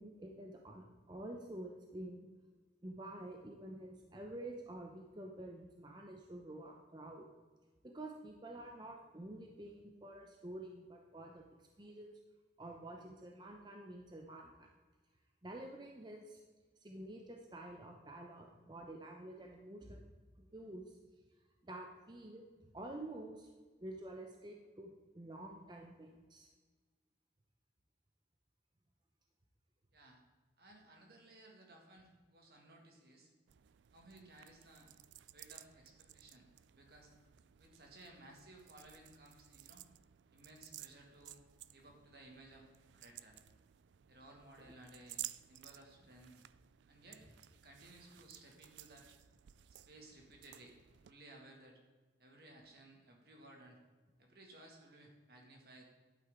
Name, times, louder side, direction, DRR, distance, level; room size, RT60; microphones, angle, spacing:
voice 1, 0.0-2.3 2.8-7.3 7.8-12.1 12.6-14.7 15.4-16.4 16.8-20.0 20.4-21.0 21.6-22.4 22.7-23.5 23.8-26.5 44.6-44.7, right 1 dB, 25° right, 1 dB, 0.8 m, -49 dB
voice 2, 30.6-33.3 33.9-34.9 35.3-37.1 37.6-39.9 40.3-41.4 41.7-43.4 44.1-45.2 45.5-46.4 46.9-47.3 47.5-49.1 49.9-50.8 51.0-51.8 52.2-53.8 54.2-55.8, right 1 dB, 60° right, 1 dB, 2.1 m, -59 dB
sound 1, 33.5-51.1, right 14 dB, 90° right, 0.4 m, -55 dB
11.5 x 8.9 x 3.7 m, 1.4 s
head